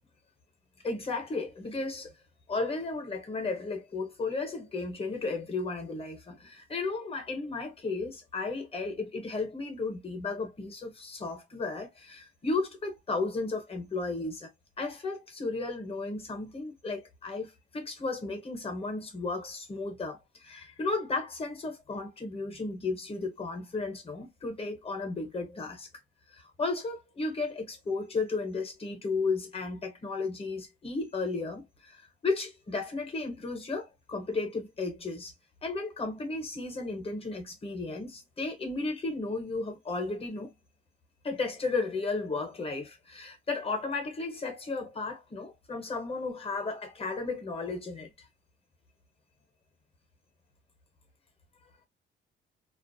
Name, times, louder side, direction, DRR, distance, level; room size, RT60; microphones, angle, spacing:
voice 1, 0.8-2.1 2.5-14.5 14.8-25.9 26.6-35.3 35.6-40.5 41.2-48.1, left 3 dB, 30° left, 1.1 m, -34 dB
2.5 x 2.0 x 2.6 m
cardioid pair, 90°, 20 cm